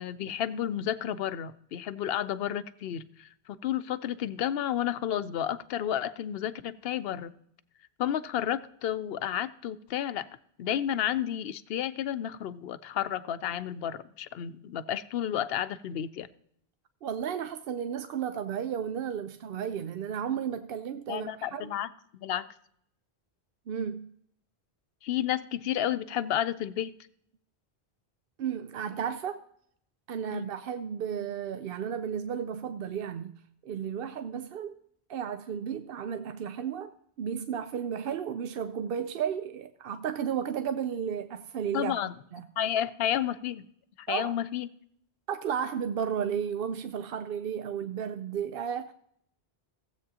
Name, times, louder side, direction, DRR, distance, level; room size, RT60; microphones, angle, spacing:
voice 1, 0.0-7.3 8.0-10.3 10.6-16.3 21.1-21.9 22.2-22.5 25.0-26.9 30.3-30.5 41.7-42.1 42.6-43.7 44.0-44.7, left 10 dB, 70° left, 0.8 m, -31 dB
voice 2, 17.0-21.7 23.7-24.1 28.4-29.4 30.1-33.4 33.6-34.7 35.1-42.0 42.3-42.4 44.1-44.3 45.3-48.9, right 8 dB, 70° right, 0.7 m, -33 dB
16.0 x 8.0 x 2.7 m
omnidirectional pair, 1.0 m